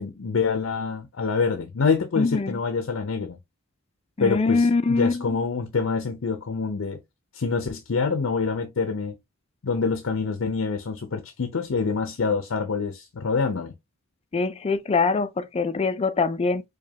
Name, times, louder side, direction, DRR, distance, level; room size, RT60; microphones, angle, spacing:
voice 1, 0.0-3.4 4.2-7.0 7.3-9.2 9.6-13.7, left 5 dB, 75° left, 0.6 m, -26 dB
voice 2, 2.2-2.6 4.2-5.2 14.3-16.6, left 4 dB, 30° left, 0.4 m, -23 dB
5.1 x 2.2 x 2.8 m
head